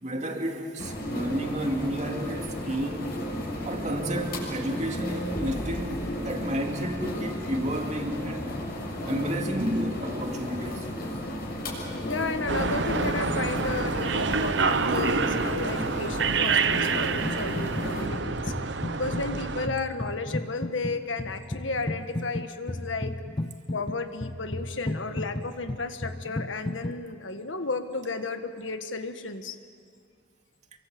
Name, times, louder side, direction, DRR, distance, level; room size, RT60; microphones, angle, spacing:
voice 1, 0.0-3.1 3.6-8.5 9.0-10.9, equal, 40° right, 2.5 m, -31 dB
sound 1, 0.8-18.1, left 1 dB, 50° left, 6.8 m, -34 dB
voice 2, 12.0-18.5 19.0-23.1 23.7-29.6, left 3 dB, 85° left, 1.6 m, -33 dB
sound 2, 12.5-19.7, right 4 dB, 65° right, 0.9 m, -27 dB
sound 3, 17.2-17.9 18.1-27.0, left 1 dB, 25° left, 0.6 m, -34 dB
28.0 x 24.0 x 7.9 m
head